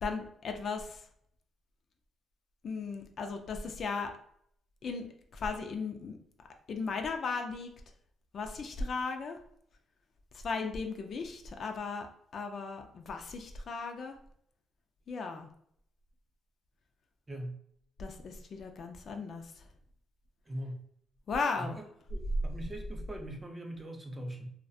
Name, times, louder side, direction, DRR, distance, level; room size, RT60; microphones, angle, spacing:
voice 1, 0.0-1.1 2.6-4.1 4.8-5.1 5.3-6.2 6.7-7.7 8.3-9.4 10.3-12.1 12.3-14.2 15.1-15.5 18.0-19.6 21.3-21.8, left 4 dB, 55° left, 5 dB, 0.3 m, -36 dB
voice 2, 20.5-20.8 21.6-21.8 22.1-24.5, right 1 dB, 20° right, 4 dB, 0.5 m, -41 dB
2.3 x 2.1 x 2.6 m, 0.68 s
cardioid pair, 90°, 0 cm